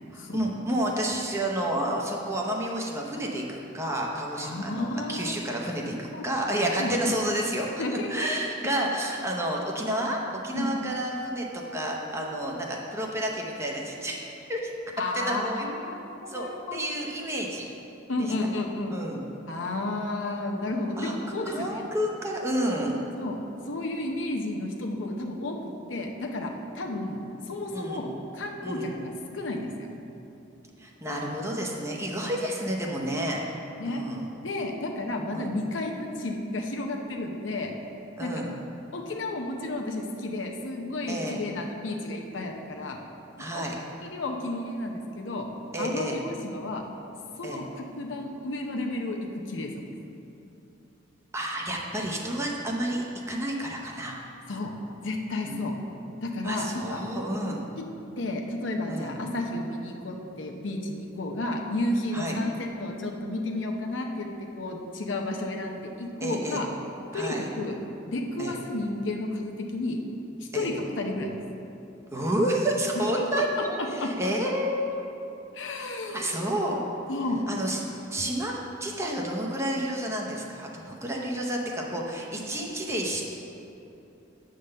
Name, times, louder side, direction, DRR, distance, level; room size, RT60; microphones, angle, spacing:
voice 1, 0.1-10.2 10.4-14.2 14.5-14.7 15.1-15.7 16.3-17.7 18.2-18.3 18.9-19.3 21.0-21.1 21.5-22.9 27.7-28.1 28.6-28.9 30.8-33.4 33.8-34.3 35.3-35.5 38.2-38.6 41.1-41.4 43.4-43.8 45.7-46.2 47.4-47.6 51.3-54.2 55.5-55.6 56.4-57.6 58.9-59.1 62.1-62.4 66.2-66.6 67.1-67.5 68.4-68.5 70.5-70.7 72.1-75.1 76.1-76.8 77.5-77.8 78.1-78.5 78.8-83.2, right 1 dB, 15° right, -1 dB, 0.8 m, -30 dB
voice 2, 4.4-5.3 6.1-6.2 6.8-6.9 7.8-8.3 10.5-10.7 15.0-16.9 18.1-19.0 19.5-21.8 23.2-23.4 23.7-25.6 25.9-28.1 28.3-29.9 32.2-32.3 32.8-33.1 33.8-34.0 34.4-37.7 38.2-38.4 38.9-43.0 43.5-43.6 44.1-45.5 45.8-46.8 47.4-49.2 49.5-49.8 54.5-54.7 55.0-55.7 56.2-57.0 58.2-64.3 64.5-66.7 67.1-67.8 68.1-70.0 70.5-71.3 72.9-73.4 73.8-74.1 75.5-76.3 77.1-77.4 82.4-82.6, left 2 dB, 75° left, 2 dB, 0.8 m, -32 dB
8.3 x 3.9 x 6.4 m, 2.8 s
head